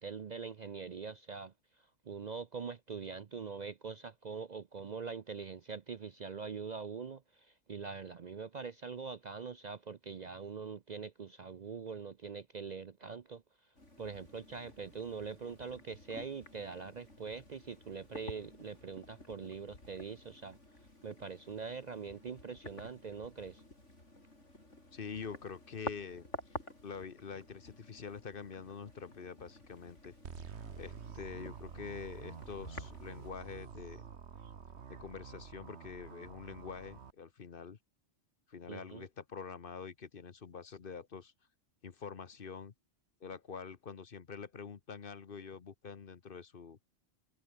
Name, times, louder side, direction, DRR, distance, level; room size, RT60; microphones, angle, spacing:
voice 1, 0.0-1.5 2.1-13.4 14.0-20.6 21.0-23.6 38.7-39.0, right 5 dB, 45° right, 0.6 m, -43 dB
sound 1, 13.7-33.3, left 1 dB, 75° left, 7.5 m, -51 dB
voice 2, 24.9-30.1 30.8-34.0 34.9-37.8 38.5-41.3 41.8-42.7 43.2-46.8, left 5 dB, 50° left, 1.2 m, -46 dB
sound 2, 30.2-37.1, right 6 dB, 65° right, 1.6 m, -49 dB
omnidirectional pair, 1.3 m